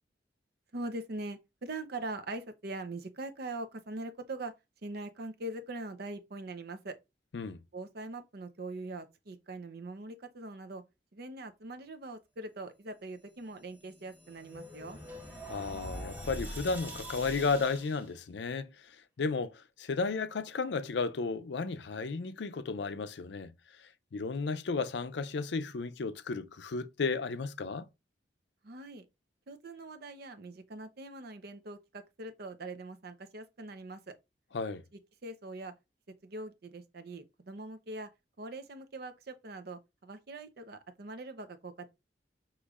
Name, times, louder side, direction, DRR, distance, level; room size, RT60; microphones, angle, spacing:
voice 1, 0.7-4.5 4.8-7.0 7.7-10.8 11.1-15.0 28.6-29.1 29.5-34.1 35.2-35.7 36.2-38.1 38.4-41.9, right 2 dB, 60° right, 0.7 m, -42 dB
sound 1, 13.6-18.1, equal, 10° right, 1.2 m, -44 dB
voice 2, 15.5-18.7 19.2-23.5 24.1-27.9 34.5-34.8, left 4 dB, 65° left, 0.5 m, -33 dB
6.4 x 3.1 x 2.4 m
head